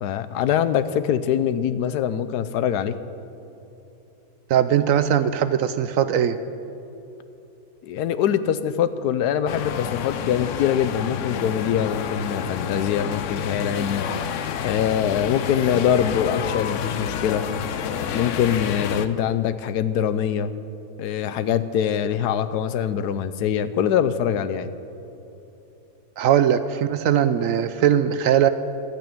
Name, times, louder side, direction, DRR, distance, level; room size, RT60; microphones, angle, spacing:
voice 1, 0.0-2.9 7.8-14.1 14.6-17.4 18.1-20.5 21.0-24.7, left 9 dB, 85° left, 13 dB, 1.2 m, -23 dB
voice 2, 4.5-6.4 26.2-28.5, right 9 dB, 70° right, 11 dB, 0.8 m, -20 dB
sound 1, 9.5-19.1, left 8 dB, 65° left, 0.8 m, -29 dB
12.0 x 9.1 x 8.6 m, 3.0 s
omnidirectional pair, 1.7 m